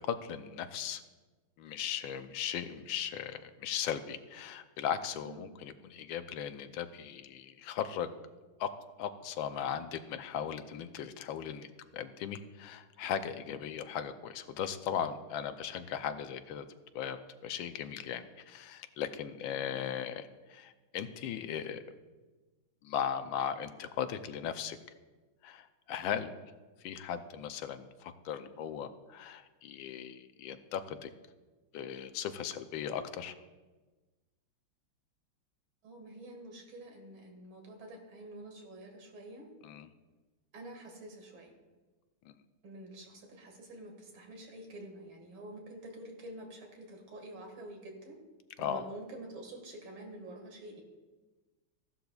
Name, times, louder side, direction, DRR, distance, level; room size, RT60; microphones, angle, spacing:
voice 1, 0.1-1.0 1.6-8.1 8.6-8.7 9.0-11.7 11.9-16.7 16.9-17.2 17.4-21.8 22.8-24.8 25.4-26.3 26.8-31.1 31.7-33.4 39.6-39.9 42.3-42.4 48.6-48.8, left 9 dB, 75° left, 10 dB, 1.4 m, -37 dB
voice 2, 5.2-5.5 19.4-19.7 35.8-39.5 40.5-41.5 42.6-48.2 48.6-50.8, right 1 dB, 70° right, 2 dB, 2.7 m, -48 dB
15.0 x 11.5 x 2.4 m, 1.2 s
omnidirectional pair, 2.3 m